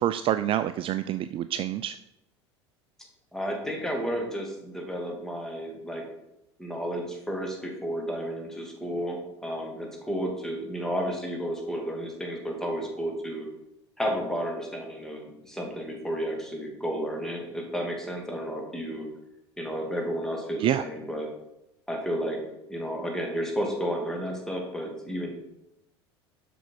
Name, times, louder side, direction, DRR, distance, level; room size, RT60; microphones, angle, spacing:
voice 1, 0.0-2.0 20.6-20.8, right 11 dB, 40° right, 12 dB, 0.4 m, -27 dB
voice 2, 3.3-6.1 6.6-13.5 14.0-19.1 19.6-21.3 21.9-22.4 22.7-25.4, equal, 5° left, 0 dB, 2.5 m, -32 dB
7.8 x 6.1 x 4.7 m, 0.87 s
hypercardioid pair, 75°, 14 cm